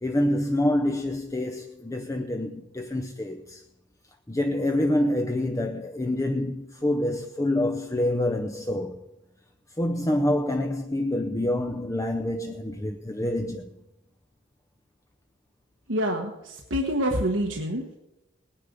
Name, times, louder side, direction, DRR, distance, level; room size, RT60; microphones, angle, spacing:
voice 1, 0.0-3.6 4.3-9.0 9.8-13.7, left 1 dB, 15° left, 0.6 m, -27 dB
voice 2, 15.9-18.0, equal, 80° right, 1.3 m, -27 dB
19.0 x 10.0 x 5.2 m
head